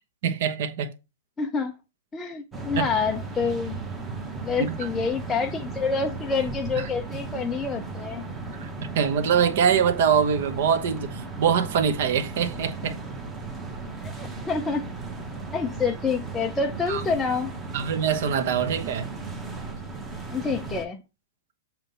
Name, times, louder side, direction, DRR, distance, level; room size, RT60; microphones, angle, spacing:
voice 1, 0.2-0.9 2.8-2.9 4.6-4.8 8.6-8.7 8.9-13.0 16.9-17.0 17.7-19.1, right 7 dB, 50° right, 1.0 m, -23 dB
voice 2, 1.4-1.7 2.1-3.8 4.4-8.2 14.0-14.9 15.5-17.5 20.3-21.0, left 5 dB, 10° left, 0.5 m, -27 dB
sound 1, 2.5-20.9, right 3 dB, 10° right, 1.0 m, -36 dB
7.5 x 3.0 x 5.4 m
hypercardioid pair, 165°, 0 cm